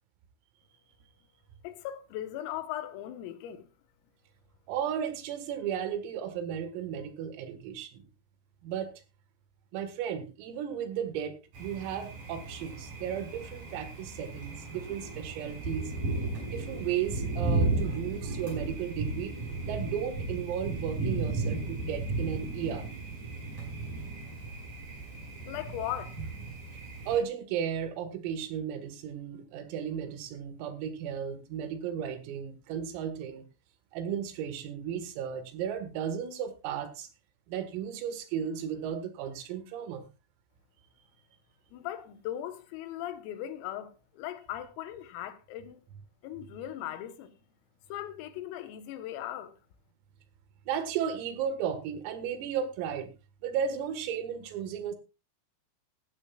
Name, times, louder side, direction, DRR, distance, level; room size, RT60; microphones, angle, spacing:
voice 1, 1.6-3.7 25.5-26.2 41.7-45.8 46.2-47.3 47.9-49.5, left 12 dB, 85° left, 3.9 m, -38 dB
voice 2, 4.7-8.0 8.6-8.9 9.7-15.9 16.5-19.3 19.6-22.9 27.1-33.5 33.9-37.1 37.5-40.1 50.7-53.1 53.4-55.0, right 8 dB, 90° right, 4.4 m, -34 dB
Thunder, 11.5-27.2, right 3 dB, 45° right, 6.4 m, -35 dB
16.0 x 14.5 x 2.4 m
omnidirectional pair, 5.8 m